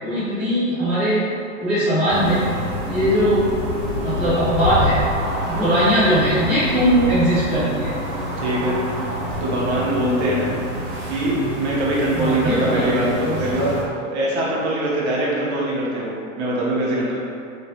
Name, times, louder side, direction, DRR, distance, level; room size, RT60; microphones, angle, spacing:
voice 1, 0.0-1.2 1.6-2.4 2.9-3.4 4.0-5.0 5.5-7.9 12.1-13.4, equal, 5° right, -17 dB, 0.6 m, -20 dB
sound 1, 2.1-13.8, equal, 75° right, 1.2 m, -27 dB
voice 2, 8.4-8.8 9.4-10.5 11.1-17.1, right 1 dB, 55° right, -6 dB, 0.8 m, -23 dB
3.0 x 2.2 x 2.7 m, 2.4 s
supercardioid pair, 165°, 40 cm